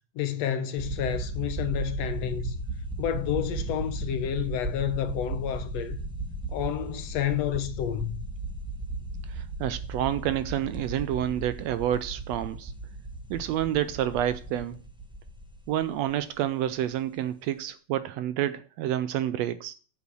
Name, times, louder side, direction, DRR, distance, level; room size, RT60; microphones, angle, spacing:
voice 1, 0.2-2.6 3.0-6.0 6.5-8.2, left 10 dB, 70° left, 1.9 m, -30 dB
sound 1, 0.8-16.4, right 2 dB, 10° right, 0.3 m, -36 dB
voice 2, 9.3-12.7 13.3-14.8 15.7-19.7, right 12 dB, 80° right, 1.6 m, -29 dB
8.4 x 7.1 x 6.2 m
omnidirectional pair, 3.3 m